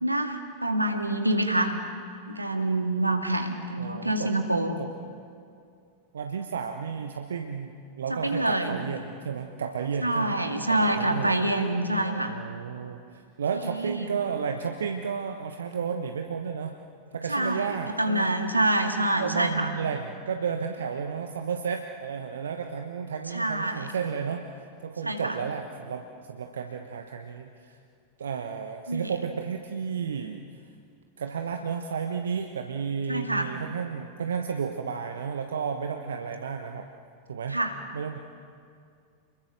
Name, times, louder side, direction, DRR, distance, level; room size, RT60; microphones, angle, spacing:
voice 1, 0.0-1.7 2.3-4.8 8.1-8.8 10.0-12.3 13.5-14.2 17.3-19.7 23.3-23.9 25.0-25.4 28.9-29.1 33.1-33.5 37.5-37.7, right 1 dB, 85° right, 4 dB, 2.1 m, -26 dB
voice 2, 3.8-4.3 4.8-4.9 6.1-10.4 10.7-11.3 11.9-16.7 17.1-18.3 19.2-27.8 28.2-30.4 31.2-36.9 37.3-37.6 37.9-38.2, right 6 dB, 65° right, 5 dB, 1.2 m, -32 dB
29.0 x 22.0 x 6.6 m, 2.3 s
figure-of-eight pair, 90°, 0 cm